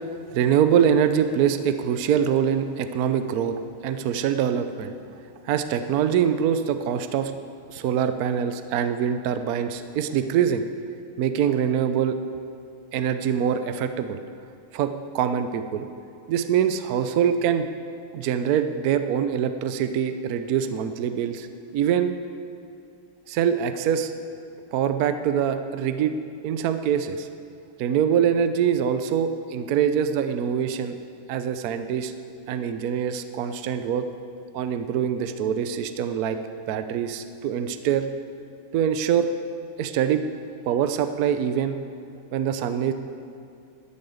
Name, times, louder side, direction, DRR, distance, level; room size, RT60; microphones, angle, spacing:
voice 1, 0.3-3.6 3.8-4.9 5.5-7.3 7.7-10.6 11.2-12.2 12.9-14.2 14.7-15.9 16.3-17.7 18.1-21.5 21.7-22.1 23.3-24.1 24.7-26.1 26.4-27.3 27.8-30.9 31.3-32.1 32.5-34.0 34.5-36.4 36.7-38.1 38.7-39.3 39.8-40.2 40.7-41.8 42.3-42.9, right 8 dB, 65° right, 9 dB, 0.9 m, -24 dB
12.5 x 8.7 x 7.9 m, 2.5 s
omnidirectional pair, 2.2 m